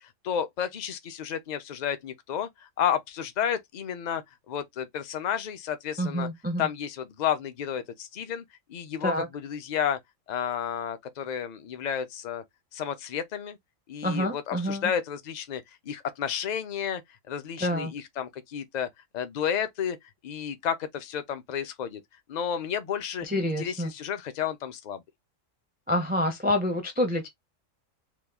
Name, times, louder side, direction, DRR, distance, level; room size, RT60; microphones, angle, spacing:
voice 1, 0.0-6.3 6.6-10.0 10.3-12.4 12.7-13.6 13.9-17.0 17.3-18.9 19.1-20.0 20.2-22.0 22.3-23.3 23.6-25.0, left 8 dB, 55° left, 0.5 m, -31 dB
voice 2, 6.0-6.7 9.0-9.3 14.0-14.8 17.6-17.9 23.2-23.9 25.9-27.3, left 1 dB, 15° right, 0.4 m, -27 dB
3.0 x 2.3 x 3.4 m
omnidirectional pair, 1.4 m